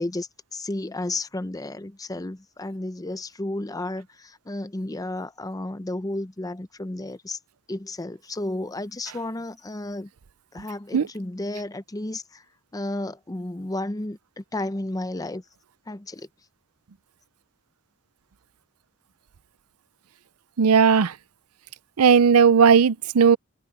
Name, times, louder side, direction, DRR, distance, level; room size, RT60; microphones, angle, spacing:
voice 1, 0.0-7.4 7.7-10.1 10.5-12.4 12.7-15.4 15.9-16.3, left 2 dB, 15° left, 0.6 m, -32 dB
voice 2, 20.6-21.1 22.0-23.4, right 6 dB, 85° right, 0.5 m, -16 dB
head